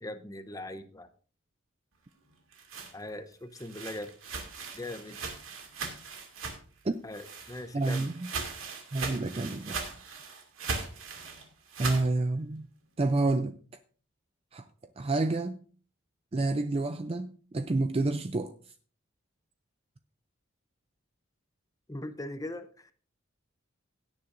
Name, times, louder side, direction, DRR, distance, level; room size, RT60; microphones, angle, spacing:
voice 1, 0.0-1.1 2.9-4.1 4.7-5.2 7.0-8.1 21.9-22.9, left 1 dB, 15° left, 0.7 m, -40 dB
sound 1, 2.3-6.8 7.1-12.1, right 4 dB, 80° right, 2.5 m, -39 dB
voice 2, 7.7-8.3 8.9-9.8 11.8-12.7 13.0-13.5 14.5-14.6 15.0-15.6 16.3-18.5, right 2 dB, 30° right, 0.4 m, -29 dB
17.0 x 9.7 x 2.6 m
head